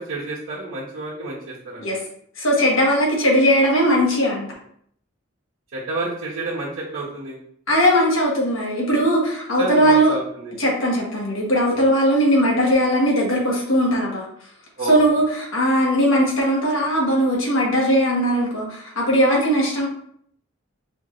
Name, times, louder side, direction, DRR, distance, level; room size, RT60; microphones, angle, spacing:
voice 1, 0.0-2.0 5.7-7.4 9.6-10.6 11.7-11.9 14.8-15.0, right 2 dB, 70° right, -8 dB, 1.1 m, -30 dB
voice 2, 2.4-4.5 7.7-10.1 10.6-14.3 14.9-19.9, equal, 75° left, -2 dB, 1.3 m, -19 dB
5.0 x 3.1 x 2.5 m, 0.65 s
head